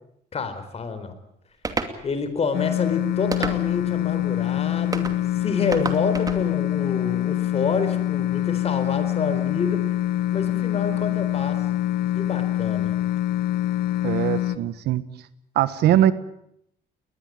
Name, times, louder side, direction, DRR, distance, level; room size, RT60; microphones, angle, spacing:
voice 1, 0.3-1.1 2.0-5.1 5.3-9.8 10.3-11.6 12.1-12.9, left 4 dB, 40° left, 11 dB, 4.3 m, -28 dB
sound 1, 1.6-2.0 3.3-3.9 4.9-5.2 5.7-6.4, right 3 dB, 20° right, 2.6 m, -29 dB
sound 2, 2.5-14.6, left 13 dB, 70° left, 1.6 m, -25 dB
voice 2, 14.0-15.0 15.5-16.1, right 12 dB, 75° right, 14 dB, 1.4 m, -21 dB
21.5 x 20.5 x 8.9 m, 0.75 s
cardioid pair, 110°, 17 cm